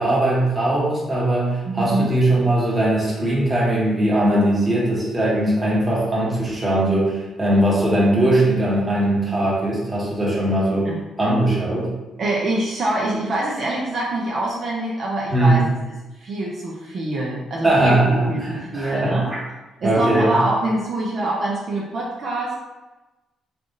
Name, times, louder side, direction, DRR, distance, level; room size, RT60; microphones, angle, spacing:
voice 1, 0.0-10.9 11.2-11.9 15.3-15.7 17.6-19.4 19.8-20.4, right 1 dB, 15° right, -6 dB, 1.5 m, -20 dB
voice 2, 1.6-2.1 10.8-11.0 12.2-15.6 16.2-19.3 19.8-22.5, right 1 dB, 55° right, -4 dB, 0.7 m, -25 dB
3.4 x 2.5 x 3.8 m, 1.1 s
cardioid pair, 90°, 0 cm